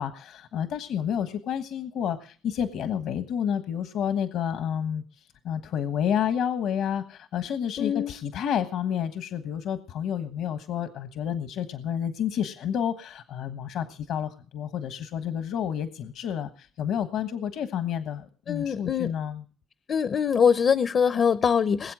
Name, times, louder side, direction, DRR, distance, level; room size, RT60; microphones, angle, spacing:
voice 1, 0.0-5.0 5.4-19.4, left 9 dB, 80° left, 1.3 m, -30 dB
voice 2, 7.8-8.1 18.5-19.1 19.9-21.9, left 7 dB, 55° left, 0.6 m, -23 dB
21.0 x 7.9 x 7.6 m
cardioid pair, 90°, 0 cm